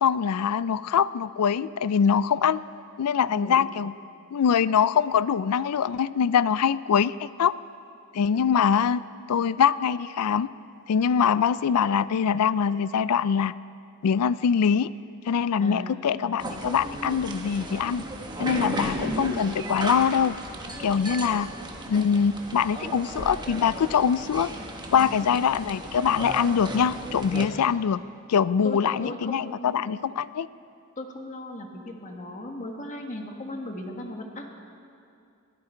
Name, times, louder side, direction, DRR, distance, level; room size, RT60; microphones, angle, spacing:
voice 1, 0.0-2.6 3.0-3.9 4.3-7.5 8.1-9.0 9.3-10.5 10.9-13.5 14.0-14.9 15.3-18.0 18.4-20.4 20.8-21.5 21.9-24.5 24.9-28.0 28.3-30.5, left 7 dB, 85° left, 17 dB, 0.4 m, -23 dB
voice 2, 3.3-3.6 15.6-16.4 18.6-19.3 21.1-21.5 28.6-30.0 31.0-34.5, left 1 dB, 35° left, 2 dB, 1.6 m, -38 dB
sound 1, 16.4-27.5, right 1 dB, 20° right, 1.3 m, -35 dB
21.5 x 15.0 x 4.5 m, 2.4 s
head